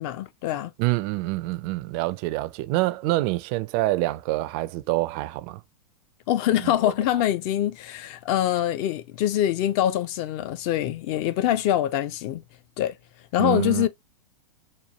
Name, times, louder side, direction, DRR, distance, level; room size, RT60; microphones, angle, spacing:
voice 1, 0.0-0.7 6.3-12.4 12.8-12.9 13.3-13.9, left 12 dB, 35° left, 0.4 m, -24 dB
voice 2, 0.8-5.6 6.6-6.9 13.4-13.9, right 18 dB, 35° right, 0.4 m, -26 dB
4.3 x 2.3 x 2.7 m
hypercardioid pair, 105°, 21 cm